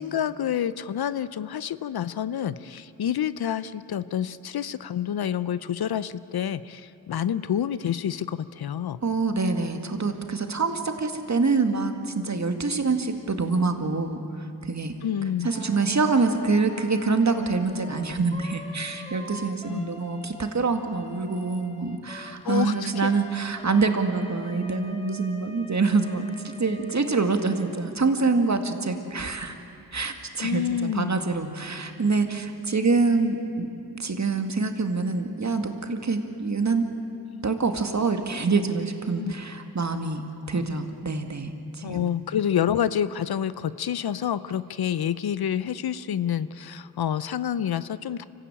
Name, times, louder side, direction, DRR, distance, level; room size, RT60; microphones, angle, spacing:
voice 1, 0.0-9.0 15.0-15.5 19.7-19.9 22.4-23.1 30.4-31.1 39.2-39.3 40.4-40.5 41.8-48.2, left 9 dB, 65° left, 16 dB, 0.7 m, -28 dB
voice 2, 9.0-14.2 14.6-14.9 15.4-26.3 26.6-29.6 29.9-30.6 30.9-33.7 34.0-36.8 37.4-42.1, right 4 dB, 40° right, 6 dB, 2.1 m, -25 dB
Wind instrument woodwind instrument, 15.5-28.0, left 1 dB, 15° left, 2.2 m, -45 dB
25.0 x 15.0 x 8.9 m, 2.6 s
cardioid pair, 45°, 41 cm